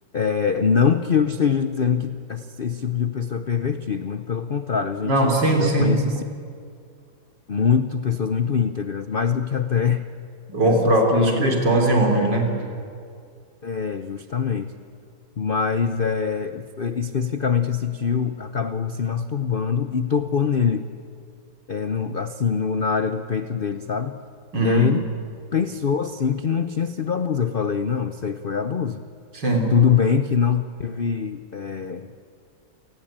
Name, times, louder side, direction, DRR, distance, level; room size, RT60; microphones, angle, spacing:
voice 1, 0.1-6.2 7.5-10.1 10.6-11.5 13.6-14.7 15.4-20.9 21.7-24.2 24.6-25.0 25.5-29.0 29.7-32.3, left 6 dB, 80° left, 10 dB, 0.4 m, -23 dB
voice 2, 5.0-6.0 10.5-12.5 24.5-24.9 29.3-29.7, right 2 dB, 60° right, 3 dB, 4.3 m, -20 dB
28.5 x 19.5 x 8.9 m, 2.3 s
omnidirectional pair, 2.1 m